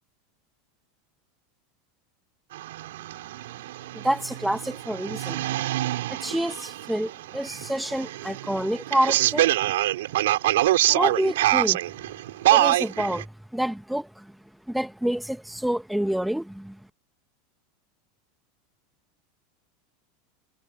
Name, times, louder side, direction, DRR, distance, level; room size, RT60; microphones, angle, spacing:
sound 1, 2.5-13.2, right 15 dB, 75° right, 7.2 m, -25 dB
voice 1, 3.9-5.4 6.1-9.6 10.9-11.9 12.5-14.3 14.7-16.8, right 1 dB, ahead, 1.8 m, -28 dB
hypercardioid pair, 100°, 0 cm